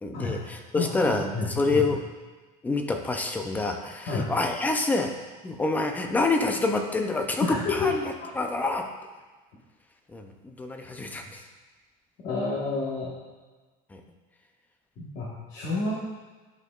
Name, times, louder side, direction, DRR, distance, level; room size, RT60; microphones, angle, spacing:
voice 1, 0.0-2.0 2.6-5.2 5.4-8.9 10.1-11.4 13.9-14.0, left 3 dB, 10° left, 4 dB, 0.4 m, -27 dB
voice 2, 0.7-1.8 4.1-4.3 7.4-7.9 12.2-13.1 15.0-15.9, left 3 dB, 45° left, -7 dB, 1.3 m, -29 dB
11.0 x 4.4 x 2.4 m, 1.3 s
cardioid pair, 165°, 19 cm